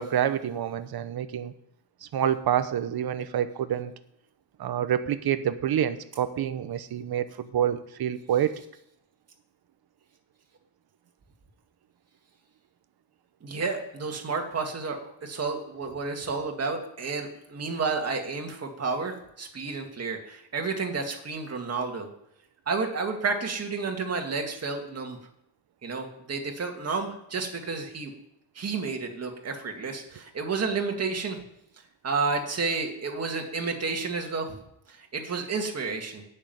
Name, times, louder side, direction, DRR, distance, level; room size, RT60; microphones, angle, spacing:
voice 1, 0.0-1.5 2.0-3.9 4.6-8.5, right 9 dB, 55° right, 12 dB, 1.0 m, -27 dB
voice 2, 13.4-22.1 22.7-25.2 25.8-28.1 28.6-31.4 32.0-34.5 34.9-36.2, right 4 dB, 35° right, 3 dB, 2.1 m, -31 dB
13.5 x 6.6 x 9.2 m, 0.79 s
wide cardioid pair, 175°, 44 cm